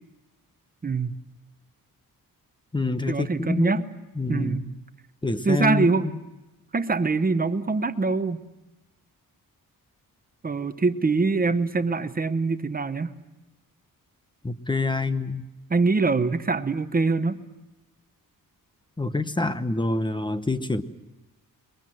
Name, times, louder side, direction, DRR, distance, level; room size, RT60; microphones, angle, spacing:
voice 1, 0.8-1.1 3.1-3.8 4.3-4.7 5.4-6.1 6.7-8.4 10.4-13.1 15.7-17.4, right 4 dB, 25° right, 11 dB, 0.8 m, -24 dB
voice 2, 2.7-3.7 4.2-4.7 5.2-5.9 14.4-15.5 19.0-20.8, left 2 dB, 15° left, 11 dB, 0.8 m, -26 dB
22.0 x 21.5 x 7.6 m, 1.0 s
wide cardioid pair, 145°, 35 cm